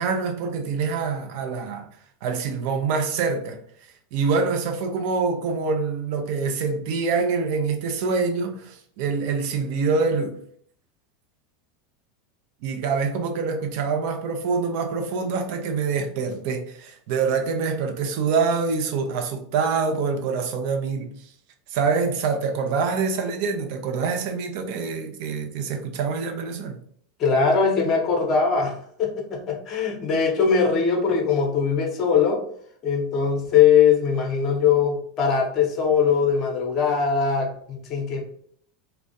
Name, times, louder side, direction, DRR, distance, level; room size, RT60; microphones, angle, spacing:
voice 1, 0.0-1.9 2.2-3.6 4.1-10.4 12.6-21.1 21.7-26.8, right 5 dB, 55° right, 0.4 m, -25 dB
voice 2, 27.2-32.4 32.8-38.2, left 6 dB, 40° left, 0.6 m, -21 dB
2.4 x 2.0 x 2.5 m
figure-of-eight pair, 85°, 0 cm